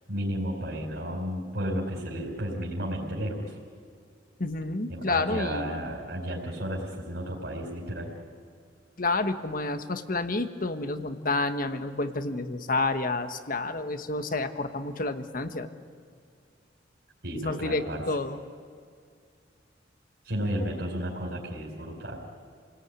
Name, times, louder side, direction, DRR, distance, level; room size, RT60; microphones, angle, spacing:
voice 1, 0.1-3.6 4.9-8.1 17.2-18.0 20.2-22.2, equal, 60° right, -2 dB, 4.5 m, -33 dB
voice 2, 4.4-5.8 9.0-15.7 17.4-18.4, left 2 dB, 50° left, 9 dB, 1.5 m, -29 dB
30.0 x 19.0 x 9.8 m, 2.2 s
head